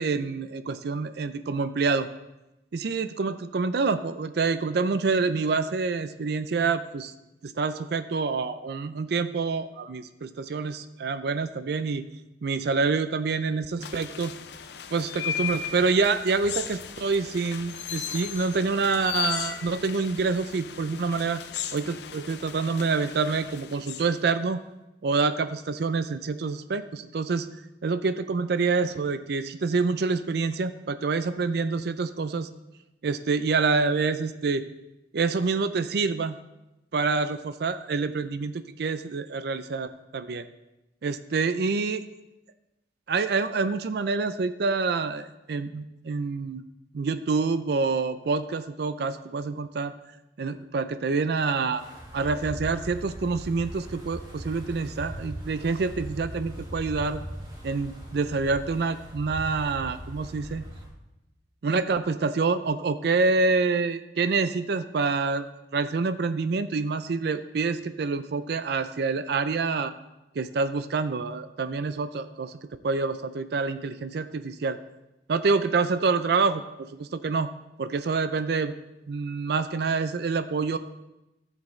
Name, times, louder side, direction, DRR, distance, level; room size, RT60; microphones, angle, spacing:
voice 1, 0.0-2.1 2.7-7.1 7.4-12.0 12.4-14.3 14.9-21.4 21.7-24.6 25.0-27.5 27.8-32.5 33.0-34.6 35.1-36.3 36.9-40.5 41.0-42.0 43.1-46.6 46.9-49.9 50.4-51.8 52.1-57.2 57.6-60.6 61.6-65.5 65.7-69.9 70.4-72.5 72.8-74.8 75.3-77.5 77.8-78.7 79.1-80.8, right 4 dB, 60° right, 11 dB, 0.4 m, -27 dB
sound 1, 13.8-24.3, left 9 dB, 60° left, 0.5 m, -36 dB
Wind, 51.8-60.9, equal, 30° right, 2.3 m, -40 dB
14.0 x 7.3 x 3.2 m, 0.94 s
head